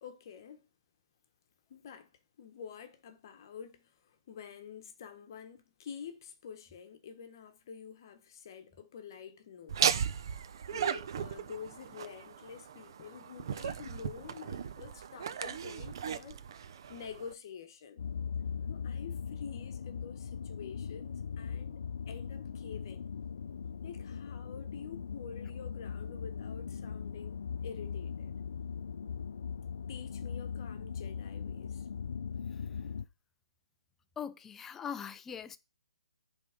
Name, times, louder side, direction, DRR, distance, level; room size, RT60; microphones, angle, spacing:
voice 1, 0.0-0.7 1.7-9.8 10.7-16.4 16.9-18.0 18.7-23.1 23.8-28.3 29.9-31.9, left 7 dB, 40° left, 1.2 m, -48 dB
Laughter, 9.7-17.3, right 8 dB, 50° right, 0.7 m, -36 dB
sound 1, 18.0-33.0, left 6 dB, 65° left, 0.6 m, -40 dB
voice 2, 34.2-35.6, left 7 dB, 10° left, 0.5 m, -41 dB
9.0 x 3.6 x 5.1 m
hypercardioid pair, 155°, 3 cm